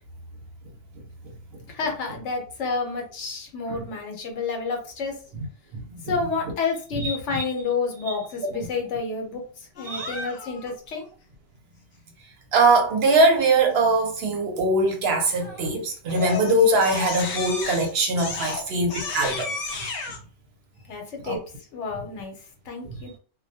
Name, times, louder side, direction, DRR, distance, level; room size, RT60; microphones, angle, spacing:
voice 1, 1.7-5.1 6.1-9.4 9.8-11.1 20.9-21.4 21.7-22.3 22.7-23.1, left 4 dB, 80° left, 1.0 m, -29 dB
voice 2, 5.7-6.2 7.0-7.4 8.4-8.5 9.8-10.2 12.5-19.5 21.2-21.4 22.9-23.0, right 2 dB, 65° right, 0.8 m, -22 dB
Crying sobbing, 9.8-10.7 15.4-15.7 16.1-20.2, left 4 dB, 60° left, 0.7 m, -33 dB
2.2 x 2.1 x 2.7 m
omnidirectional pair, 1.2 m